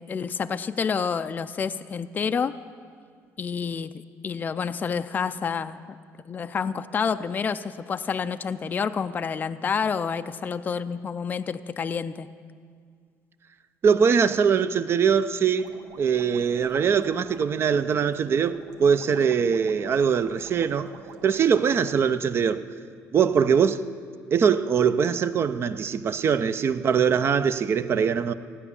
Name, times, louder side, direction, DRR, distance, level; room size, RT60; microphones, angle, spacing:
voice 1, 0.0-2.5 3.4-3.9 4.2-5.8 6.3-12.3, left 6 dB, 30° left, 10 dB, 0.4 m, -28 dB
voice 2, 13.8-15.7 16.0-20.9 21.2-22.7 23.1-23.8 24.3-28.3, right 7 dB, 40° right, 12 dB, 0.5 m, -22 dB
sound 1, 15.6-21.8, right 6 dB, 75° right, 1.1 m, -47 dB
15.5 x 9.9 x 7.0 m, 2.1 s
cardioid pair, 125°, 6 cm